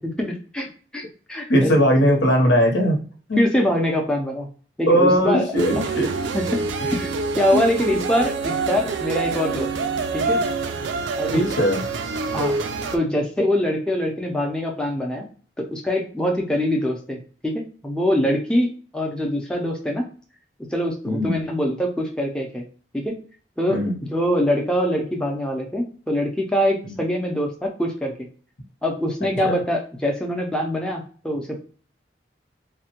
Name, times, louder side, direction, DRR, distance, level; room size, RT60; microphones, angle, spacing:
voice 1, 0.2-0.7 0.9-1.7 3.4-4.5 4.8-5.4 6.3-10.4 11.2-11.5 12.3-12.6 12.9-15.3 15.6-20.0 20.7-22.6 22.9-23.1 23.6-23.8 24.1-28.1 28.8-31.6, equal, 5° left, 0 dB, 0.4 m, -24 dB
voice 2, 1.5-3.0 3.3-3.4 4.9-6.1 6.8-6.9 7.5-7.6 11.6-11.8 21.0-21.4 23.7-24.0 26.9-27.0 29.4-29.6, equal, 90° left, 1 dB, 0.9 m, -19 dB
sound 1, 5.6-13.0, right 4 dB, 85° right, 0.4 m, -26 dB
3.3 x 2.1 x 2.8 m, 0.41 s
head